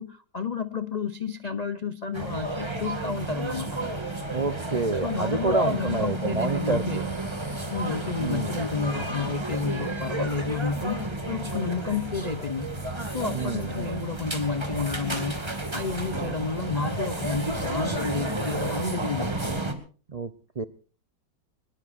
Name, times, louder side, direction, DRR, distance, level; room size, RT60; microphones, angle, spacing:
voice 1, 0.0-3.8 5.0-7.0 7.7-12.7 13.1-15.4 15.7-19.4, left 5 dB, 80° left, 12 dB, 0.3 m, -31 dB
sound 1, 2.1-19.7, right 1 dB, 15° right, 2.0 m, -31 dB
voice 2, 4.3-7.0 8.2-8.6 13.3-13.7 20.1-20.3 20.6-20.7, right 3 dB, 65° right, 10 dB, 0.3 m, -28 dB
23.5 x 20.5 x 2.5 m, 0.38 s
omnidirectional pair, 1.9 m